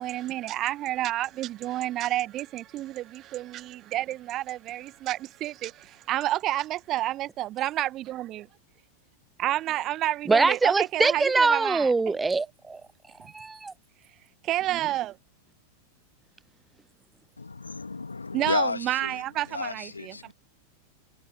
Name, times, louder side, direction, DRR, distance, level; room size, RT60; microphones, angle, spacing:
voice 1, 0.0-8.5 9.4-12.2 14.4-15.2 18.3-20.3, right 14 dB, 35° right, 1.4 m, -30 dB
voice 2, 10.3-12.8 13.2-13.7, right 3 dB, 10° right, 0.4 m, -23 dB
voice 3, 17.6-19.2 19.5-20.3, left 4 dB, 80° left, 2.7 m, -31 dB
figure-of-eight pair, 90°, 0 cm